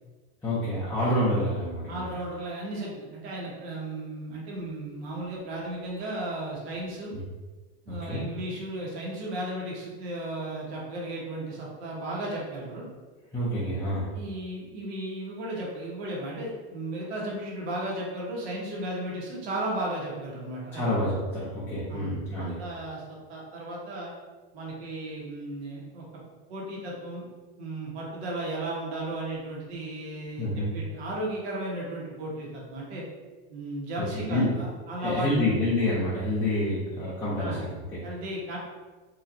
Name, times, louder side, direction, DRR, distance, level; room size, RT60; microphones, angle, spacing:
voice 1, 0.4-2.1 7.9-8.2 13.3-14.1 20.7-22.6 30.4-30.7 33.9-34.6 35.0-38.0, left 1 dB, 5° left, -10 dB, 0.5 m, -28 dB
voice 2, 1.9-7.1 7.8-12.9 14.1-20.9 21.9-24.1 24.5-26.0 26.5-27.3 27.6-33.0 33.5-35.5 37.4-37.6 38.0-38.6, right 1 dB, 75° right, -3 dB, 1.4 m, -35 dB
4.2 x 3.0 x 2.6 m, 1.3 s
supercardioid pair, 165°, 32 cm